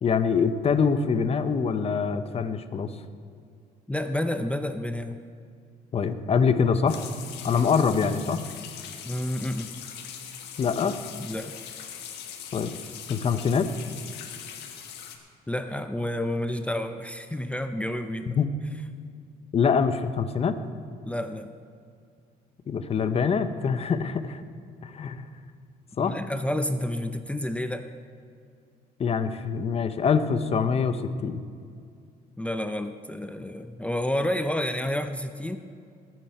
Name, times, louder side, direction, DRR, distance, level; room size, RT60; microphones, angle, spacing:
voice 1, 0.0-2.9 5.9-7.0 7.4-8.4 10.6-11.0 12.5-12.8 13.1-13.7 18.4-18.5 19.5-20.6 22.7-24.4 24.8-25.3 26.0-26.2 29.0-31.4, left 6 dB, 35° left, 10 dB, 0.9 m, -24 dB
voice 2, 3.9-5.2 9.0-9.7 11.2-11.5 15.5-18.4 21.0-21.5 25.9-27.9 32.4-35.6, left 1 dB, 5° left, 7 dB, 0.6 m, -30 dB
sound 1, 6.9-15.2, left 8 dB, 80° left, 1.6 m, -41 dB
20.5 x 9.2 x 4.4 m, 2.3 s
cardioid pair, 110°, 17 cm